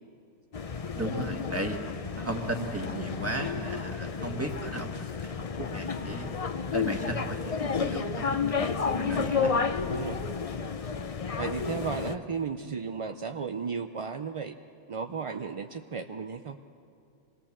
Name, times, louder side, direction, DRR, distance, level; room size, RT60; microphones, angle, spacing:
sound 1, 0.5-12.2, left 5 dB, 35° left, 0.6 m, -31 dB
voice 1, 1.0-1.8 2.2-6.3 6.7-9.5, right 1 dB, 10° right, 2 dB, 1.8 m, -36 dB
voice 2, 9.3-10.2 11.3-14.6 14.9-16.6, right 5 dB, 45° right, 6 dB, 0.4 m, -35 dB
26.0 x 20.5 x 7.3 m, 2.5 s
omnidirectional pair, 1.3 m